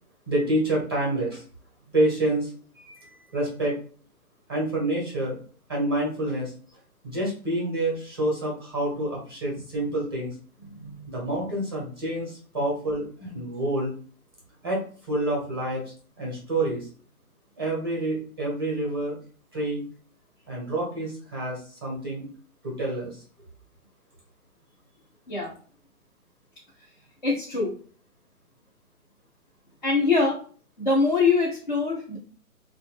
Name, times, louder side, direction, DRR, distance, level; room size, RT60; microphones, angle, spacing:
voice 1, 0.3-1.4 1.9-3.8 4.5-5.4 5.7-6.5 7.0-10.4 11.1-13.9 14.6-14.8 15.1-16.9 17.6-19.2 19.5-19.8 20.5-22.2 22.6-23.2, right 1 dB, 15° right, -3 dB, 0.5 m, -28 dB
voice 2, 10.7-11.0 25.3-25.5 27.2-27.7 29.8-30.4 30.8-32.2, left 4 dB, 35° left, -6 dB, 0.4 m, -23 dB
2.5 x 2.1 x 3.1 m, 0.43 s
hypercardioid pair, 165°, 44 cm